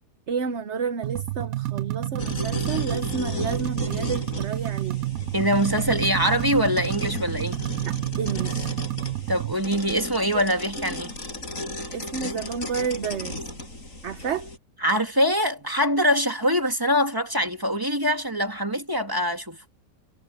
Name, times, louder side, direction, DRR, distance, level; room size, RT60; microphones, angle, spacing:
voice 1, 0.3-5.0 7.8-8.8 10.3-10.4 10.9-11.0 11.9-13.4 14.0-14.5, right 6 dB, 50° right, 1.1 m, -31 dB
sound 1, 1.0-9.5, right 15 dB, 65° right, 1.0 m, -30 dB
sound 2, 2.2-14.6, left 1 dB, 50° left, 7.8 m, -34 dB
voice 2, 5.3-7.6 9.3-11.1 14.8-19.6, equal, 10° right, 2.4 m, -23 dB
omnidirectional pair, 1.8 m